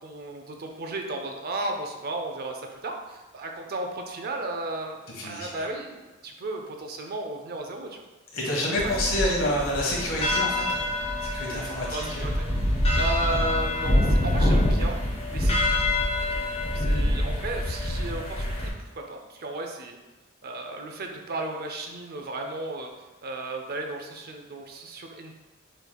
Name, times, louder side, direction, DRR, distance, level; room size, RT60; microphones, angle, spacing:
voice 1, 0.0-8.0 8.8-8.9 9.2-9.6 11.9-12.5 13.0-15.0 15.3-15.6 16.3-16.4 16.7-20.0 20.4-22.9 23.2-25.3, right 2 dB, 50° right, 3 dB, 0.6 m, -34 dB
voice 2, 5.2-5.5 8.3-10.9 11.2-12.3 13.3-13.4 14.4-14.5, left 1 dB, 75° left, -3 dB, 1.4 m, -28 dB
sound 1, 8.8-18.7, left 1 dB, 30° left, 0.9 m, -25 dB
6.6 x 3.2 x 2.3 m, 1.1 s
head